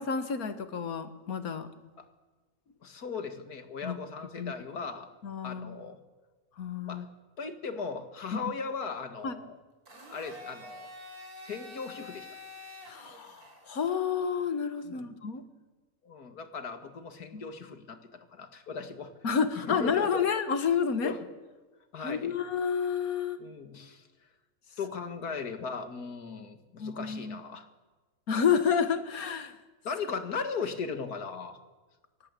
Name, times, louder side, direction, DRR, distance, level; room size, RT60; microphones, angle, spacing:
voice 1, 0.0-1.7 3.8-4.0 4.4-4.5 5.2-5.8 6.6-7.1 8.3-8.5 9.2-9.4 12.9-15.4 17.3-17.4 19.2-21.1 22.0-23.4 26.8-27.4 28.3-29.5, left 6 dB, 70° left, 10 dB, 2.0 m, -30 dB
voice 2, 2.8-5.1 5.4-6.0 6.9-7.0 7.4-9.5 10.1-10.9 11.4-12.3 14.8-15.1 16.0-19.1 19.5-20.1 21.0-21.2 21.9-22.4 23.4-24.0 24.8-27.7 29.8-31.6, left 5 dB, 90° left, 8 dB, 2.3 m, -38 dB
Domestic sounds home sounds, 9.9-13.9, left 2 dB, 80° right, 4.8 m, -47 dB
23.0 x 18.5 x 8.4 m, 1.2 s
omnidirectional pair, 1.6 m